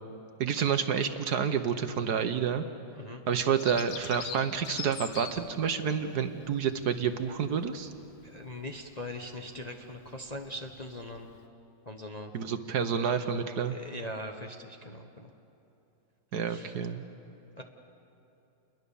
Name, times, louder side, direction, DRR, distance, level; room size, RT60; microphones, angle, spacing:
voice 1, 0.4-2.6 3.3-7.9 12.3-13.7 16.3-17.0, right 7 dB, 60° right, 8 dB, 1.3 m, -29 dB
Bird vocalization bird call bird song, 3.6-11.4, left 6 dB, 80° left, 1.9 m, -45 dB
voice 2, 8.2-11.3 11.9-12.3 13.6-15.3 16.5-16.8 17.6-17.7, left 1 dB, 25° left, 2 dB, 1.0 m, -41 dB
28.5 x 21.5 x 7.0 m, 2.8 s
omnidirectional pair, 2.1 m